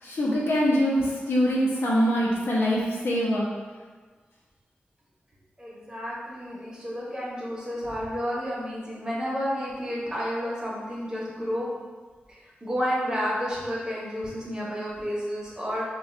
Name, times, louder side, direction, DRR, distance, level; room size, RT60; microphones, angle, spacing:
voice 1, 0.0-3.5, equal, 85° left, -5 dB, 0.7 m, -24 dB
voice 2, 5.6-11.8 12.6-15.8, equal, 20° right, -6 dB, 0.8 m, -31 dB
2.5 x 2.3 x 4.1 m, 1.4 s
wide cardioid pair, 125°, 4 cm